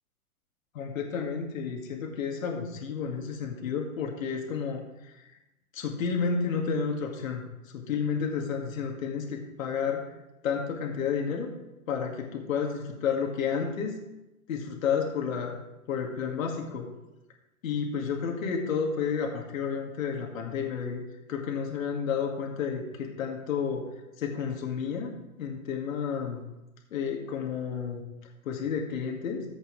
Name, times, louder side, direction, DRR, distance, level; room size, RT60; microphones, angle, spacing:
voice 1, 0.7-4.8 5.1-5.3 5.7-10.0 10.4-11.5 11.9-14.0 14.5-15.6 15.9-16.9 17.6-21.0 21.3-23.9 24.2-25.1 25.4-26.4 26.9-28.0 28.4-29.4, left 6 dB, 60° left, 1 dB, 2.1 m, -31 dB
14.5 x 8.0 x 3.2 m, 0.94 s
hypercardioid pair, 125°, 44 cm